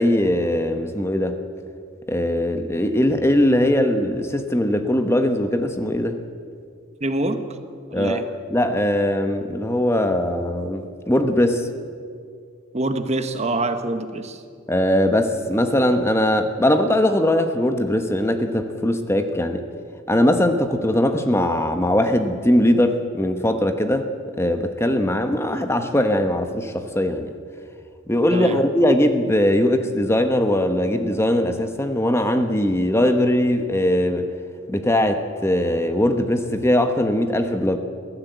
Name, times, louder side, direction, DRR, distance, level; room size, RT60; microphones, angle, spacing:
voice 1, 0.0-1.4 2.1-6.2 7.9-8.2 8.5-11.7 14.7-19.6 20.1-24.1 24.4-27.3 28.1-34.3 34.7-37.8, left 1 dB, 10° left, 7 dB, 1.0 m, -20 dB
voice 2, 7.0-7.6 7.9-8.3 12.7-14.4 28.3-28.6, right 2 dB, 30° right, 8 dB, 1.1 m, -25 dB
23.5 x 16.0 x 8.0 m, 2.3 s
head